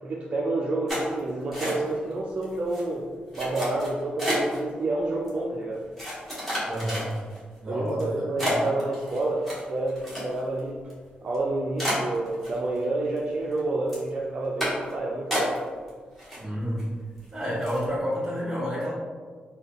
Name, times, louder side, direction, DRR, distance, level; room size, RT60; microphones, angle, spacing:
voice 1, 0.0-3.1 3.3-5.9 7.6-10.8 11.2-15.5, right 2 dB, 40° right, -3 dB, 0.3 m, -29 dB
sound 1, 0.9-2.1 2.4-2.8 3.3-4.6 5.3-5.4 6.0-7.4 7.9-8.0 8.4-10.6 10.9-11.0 11.3-11.4 11.8-12.8 13.2-13.6 13.9-14.1 14.6-14.9 15.3-15.9 16.2-16.8 17.2-17.3 17.6-17.9, equal, 5° left, 1.2 m, -31 dB
voice 2, 6.7-7.1 7.6-8.7 16.4-16.8 17.3-18.9, equal, 10° right, -6 dB, 1.1 m, -30 dB
3.7 x 2.2 x 3.5 m, 1.6 s
wide cardioid pair, 175°, 3 cm